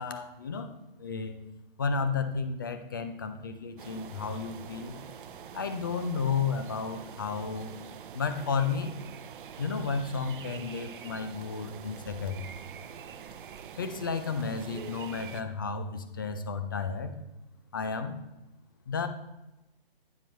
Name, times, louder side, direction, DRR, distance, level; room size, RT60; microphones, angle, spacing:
voice 1, 0.0-1.3 1.8-5.0 5.5-7.7 8.1-8.9 9.6-12.4 13.8-17.1 17.7-18.2 18.9-19.1, left 5 dB, 25° left, 9 dB, 0.4 m, -32 dB
sound 1, 3.8-15.4, right 7 dB, 60° right, 0.6 m, -45 dB
9.2 x 4.5 x 5.2 m, 0.98 s
hypercardioid pair, 160°, 29 cm